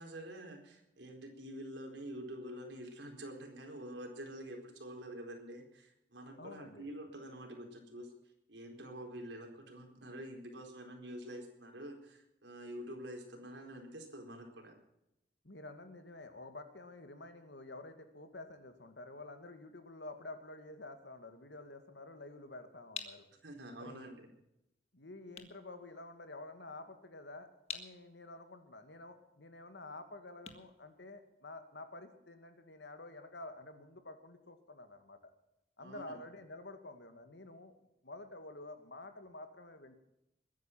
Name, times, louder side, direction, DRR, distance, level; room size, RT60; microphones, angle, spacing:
voice 1, 0.0-8.1 8.5-14.7 23.4-24.3 35.8-36.2, right 1 dB, 85° right, 2 dB, 4.3 m, -47 dB
voice 2, 6.4-6.9 15.4-23.3 23.8-24.1 24.9-35.3 35.8-37.7 38.0-40.0, left 2 dB, 75° left, 8 dB, 2.2 m, -50 dB
sound 1, 22.9-31.7, left 6 dB, 35° left, 1.7 m, -51 dB
22.0 x 10.0 x 5.9 m, 0.86 s
head